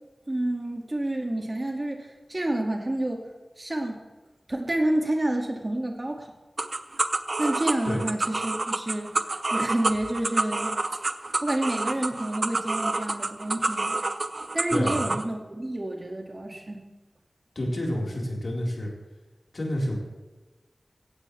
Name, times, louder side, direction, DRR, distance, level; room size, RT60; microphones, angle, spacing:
voice 1, 0.3-3.2 3.6-4.0 4.5-6.3 7.4-9.2 9.5-10.8 11.4-14.0 14.5-16.8, right 1 dB, 30° right, 2 dB, 2.2 m, -29 dB
sound 1, 6.6-15.2, right 2 dB, 50° right, 0.8 m, -28 dB
voice 2, 14.7-15.1 17.5-18.9 19.5-20.0, left 1 dB, 65° left, -3 dB, 4.5 m, -29 dB
17.0 x 15.5 x 3.4 m, 1.2 s
wide cardioid pair, 75°, 0 cm